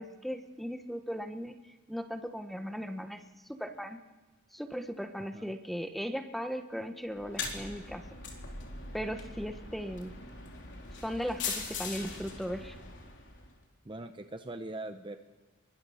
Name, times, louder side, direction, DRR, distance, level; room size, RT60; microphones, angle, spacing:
voice 1, 0.0-1.6 1.9-3.2 3.5-4.0 4.5-8.0 8.9-10.1 11.0-12.8, equal, ahead, 7 dB, 1.2 m, -37 dB
sound 1, 7.1-13.5, left 4 dB, 55° left, 3.7 m, -41 dB
voice 2, 13.8-15.2, right 2 dB, 20° right, 7 dB, 0.8 m, -41 dB
27.5 x 23.0 x 5.7 m, 1.3 s
head